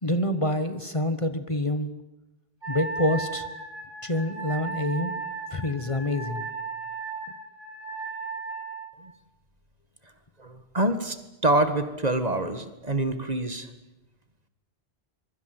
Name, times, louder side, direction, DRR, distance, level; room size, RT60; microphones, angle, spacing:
voice 1, 0.0-1.9 2.7-3.5 4.0-5.1 5.5-6.5, left 1 dB, 30° left, 10 dB, 1.4 m, -27 dB
Wind instrument woodwind instrument, 2.6-8.9, right 4 dB, 25° right, 5.9 m, -35 dB
voice 2, 10.4-11.2 11.4-13.7, right 1 dB, 40° right, 10 dB, 2.0 m, -25 dB
26.0 x 23.0 x 7.9 m, 0.99 s
omnidirectional pair, 1.0 m